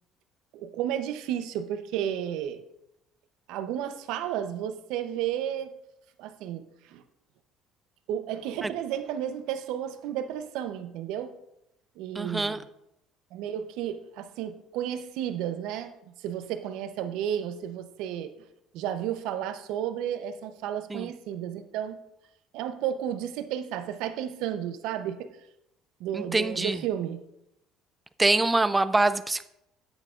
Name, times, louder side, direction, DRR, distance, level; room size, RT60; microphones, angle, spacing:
voice 1, 0.5-2.6 3.5-5.7 6.2-6.6 6.9-7.0 8.1-11.3 12.0-12.6 13.3-15.9 16.2-18.3 18.7-22.0 22.5-25.3 26.0-27.2, right 10 dB, 75° right, 9 dB, 0.6 m, -32 dB
voice 2, 12.2-12.6 20.9-21.1 26.1-26.8 28.2-29.5, right 2 dB, 10° right, 13 dB, 0.3 m, -25 dB
9.0 x 8.8 x 2.4 m, 0.82 s
cardioid pair, 165°, 0 cm